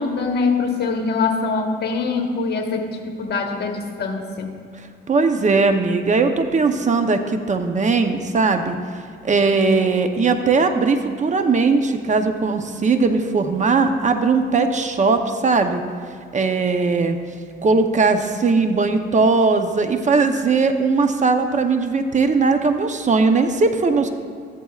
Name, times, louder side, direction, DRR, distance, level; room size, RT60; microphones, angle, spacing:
voice 1, 0.0-4.5, left 4 dB, 55° left, 3 dB, 1.4 m, -23 dB
voice 2, 5.1-8.8 9.2-15.8 16.3-17.2 17.6-24.1, right 4 dB, 35° right, 7 dB, 0.8 m, -19 dB
14.0 x 11.0 x 2.4 m, 2.2 s
cardioid pair, 90°, 20 cm